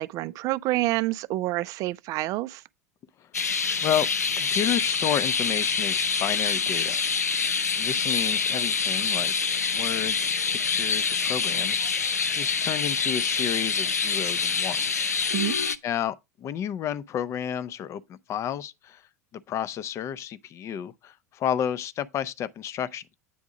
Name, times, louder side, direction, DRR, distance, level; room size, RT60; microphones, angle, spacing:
voice 1, 0.0-2.6 15.3-15.5, right 17 dB, 40° right, 0.4 m, -28 dB
sound 1, 3.3-15.8, left 5 dB, 80° left, 0.5 m, -26 dB
voice 2, 4.4-7.0 7.8-9.3 9.7-15.1 15.8-19.0 19.5-23.1, left 9 dB, 35° left, 0.6 m, -31 dB
8.5 x 3.5 x 5.0 m
figure-of-eight pair, 75°, 8 cm